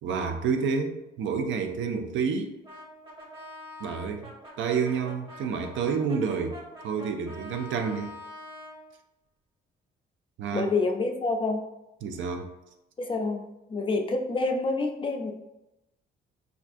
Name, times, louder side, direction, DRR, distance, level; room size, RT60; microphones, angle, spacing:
voice 1, 0.0-2.5 3.8-4.3 4.6-6.6 6.8-8.2 10.4-10.7 12.0-12.5, right 5 dB, 75° right, 6 dB, 0.4 m, -29 dB
Brass instrument, 2.6-8.8, left 1 dB, 25° right, 0.9 m, -45 dB
voice 2, 10.5-11.6 13.0-13.4 13.7-15.3, left 3 dB, 25° left, 4 dB, 0.4 m, -27 dB
3.4 x 2.4 x 2.5 m, 0.93 s
cardioid pair, 90°, 20 cm